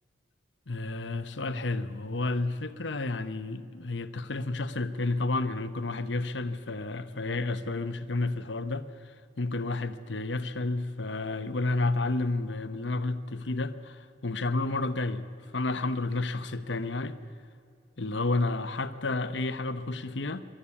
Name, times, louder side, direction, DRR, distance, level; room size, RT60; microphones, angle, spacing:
voice 1, 0.7-9.1 9.4-15.2 15.5-17.2 18.0-20.4, left 2 dB, 70° left, 1.0 m, -31 dB
24.5 x 13.0 x 8.6 m
head